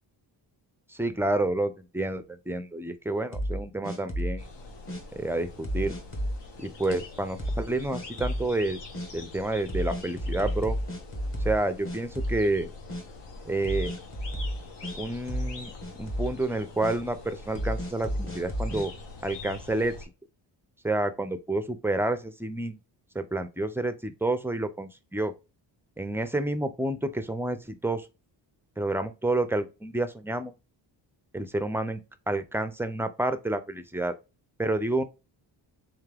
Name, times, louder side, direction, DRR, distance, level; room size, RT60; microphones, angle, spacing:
voice 1, 0.9-4.5 5.2-6.0 6.6-8.8 9.1-10.8 11.4-12.7 13.5-13.9 14.9-15.7 16.0-18.9 19.2-19.9 20.8-22.8 23.1-25.3 26.0-28.1 28.8-30.5 31.3-32.0 32.3-34.1 34.6-35.0, right 2 dB, 5° right, 0.4 m, -29 dB
sound 1, 3.3-4.4 4.9-5.0 5.6-6.4 6.9-7.0 7.4-7.7 7.9-8.5 8.9-9.1 9.7-11.6 11.9-12.6 12.9-13.0 13.6-15.0 15.3-15.6 15.8-16.3 16.8-17.0 17.6-18.9, equal, 30° left, 1.3 m, -31 dB
sound 2, 4.4-20.0, left 3 dB, 75° left, 1.3 m, -44 dB
3.7 x 3.5 x 3.3 m
cardioid pair, 105°, 43 cm